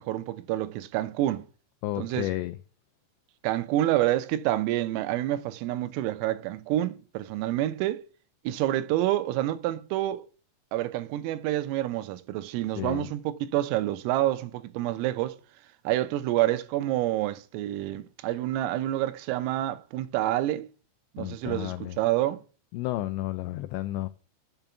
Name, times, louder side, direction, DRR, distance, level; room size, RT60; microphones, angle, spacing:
voice 1, 0.0-1.5 2.0-2.3 3.4-8.0 8.5-10.3 10.7-15.4 15.9-20.7 21.2-22.4, right 14 dB, 85° right, 3.5 m, -28 dB
voice 2, 1.8-2.6 12.8-13.1 21.2-22.0 22.7-24.1, left 16 dB, 85° left, 2.5 m, -32 dB
7.9 x 7.2 x 8.0 m
omnidirectional pair, 5.9 m